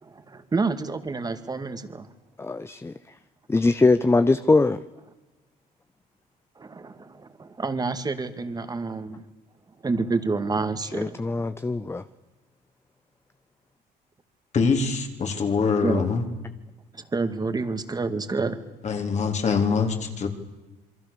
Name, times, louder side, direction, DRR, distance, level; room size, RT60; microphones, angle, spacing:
voice 1, 0.0-2.1 6.6-9.3 9.8-11.5 15.8-16.1 16.9-18.6, right 3 dB, 25° right, 2.1 m, -29 dB
voice 2, 2.4-2.9 3.5-4.8 10.9-12.0, left 3 dB, 15° left, 0.7 m, -21 dB
voice 3, 14.5-16.2 18.8-20.3, left 5 dB, 45° left, 3.6 m, -24 dB
27.5 x 23.0 x 6.9 m
cardioid pair, 110°, 17 cm